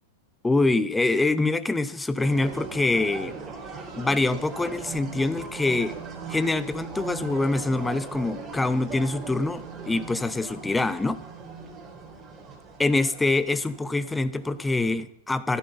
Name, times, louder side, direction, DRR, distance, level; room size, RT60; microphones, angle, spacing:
voice 1, 0.4-3.3 4.0-6.0 6.3-11.2 12.8-15.6, left 2 dB, 10° left, 14 dB, 0.9 m, -25 dB
sound 1, 2.2-15.0, right 4 dB, 20° right, 3.7 m, -40 dB
15.0 x 13.0 x 5.5 m, 0.71 s
figure-of-eight pair, 90°, 0 cm